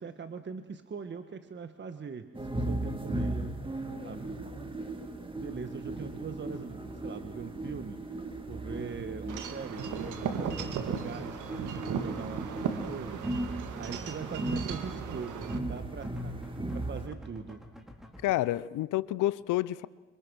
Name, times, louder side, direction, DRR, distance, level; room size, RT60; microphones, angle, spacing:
voice 1, 0.0-4.5 5.3-8.2 8.5-11.4 11.7-13.2 13.7-17.6, right 5 dB, 35° right, 9 dB, 1.5 m, -42 dB
sound 1, 2.3-17.1, right 2 dB, 15° right, 2.4 m, -37 dB
Wind chime / Wind, 9.3-15.6, right 7 dB, 80° right, 2.3 m, -36 dB
sound 2, 9.8-18.3, left 1 dB, ahead, 4.4 m, -50 dB
voice 2, 18.2-19.9, left 16 dB, 85° left, 19 dB, 0.7 m, -29 dB
26.0 x 25.5 x 6.3 m, 1.2 s
cardioid pair, 90°, 30 cm